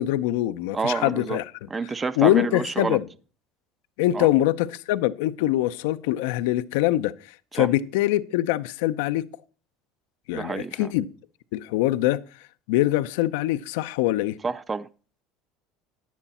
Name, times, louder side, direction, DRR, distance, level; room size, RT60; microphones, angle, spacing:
voice 1, 0.0-1.5 2.2-3.1 4.0-9.3 10.3-11.1 11.5-14.4, left 15 dB, 85° left, 0.5 m, -24 dB
voice 2, 0.7-1.4 1.7-3.0 4.1-4.3 7.6-7.7 10.3-10.9 14.4-14.9, right 4 dB, 15° right, 0.4 m, -28 dB
9.8 x 9.4 x 4.2 m
cardioid pair, 145°, 0 cm